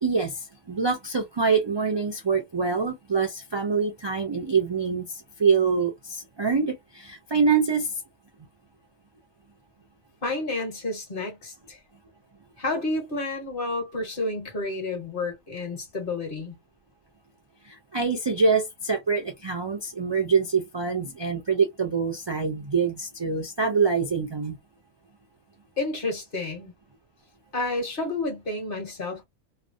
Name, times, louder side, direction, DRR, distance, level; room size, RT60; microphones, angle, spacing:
voice 1, 0.0-8.0 17.7-24.6, right 5 dB, 45° right, 0.3 m, -25 dB
voice 2, 10.2-11.8 12.6-16.5 25.8-26.7 27.5-29.2, left 2 dB, 50° left, 1.3 m, -30 dB
3.0 x 2.0 x 2.5 m
omnidirectional pair, 1.2 m